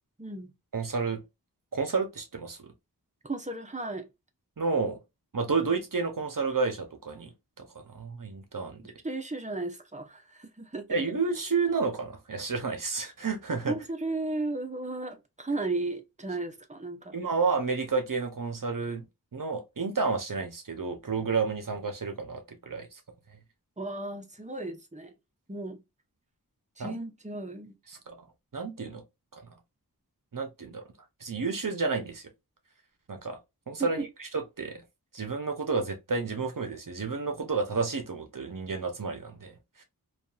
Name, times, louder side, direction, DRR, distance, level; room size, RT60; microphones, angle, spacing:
voice 1, 0.2-0.5 3.2-4.1 8.8-10.9 13.7-17.1 23.8-25.1 25.5-25.8 26.8-27.8 33.8-34.1, right 2 dB, 20° right, 0.7 m, -35 dB
voice 2, 0.7-1.2 1.7-2.7 4.6-5.0 5.3-7.3 7.6-8.9 10.9-13.7 17.1-19.0 19.3-23.0 26.8-27.0 27.9-28.2 28.5-29.0 29.3-29.4 30.3-30.8 31.2-32.2 33.1-33.4 33.7-34.8 35.1-39.8, right 4 dB, 60° right, 0.7 m, -31 dB
2.7 x 2.4 x 2.3 m
wide cardioid pair, 40°, 38 cm